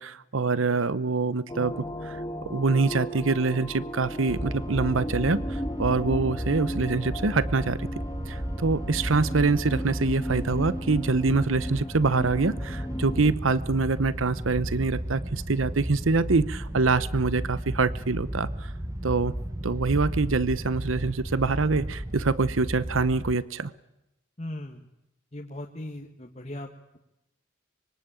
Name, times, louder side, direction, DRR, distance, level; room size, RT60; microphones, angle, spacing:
voice 1, 0.0-1.7 2.0-7.9 8.3-18.7 19.0-19.3 19.6-23.7, right 4 dB, 90° right, 17 dB, 0.9 m, -25 dB
sound 1, 1.5-13.3, equal, 15° left, 1.4 m, -35 dB
sound 2, 4.3-23.3, equal, 15° right, 0.9 m, -34 dB
voice 2, 24.4-24.9 25.3-27.0, left 1 dB, 35° left, 1 dB, 1.6 m, -38 dB
25.0 x 23.0 x 9.0 m, 0.91 s
head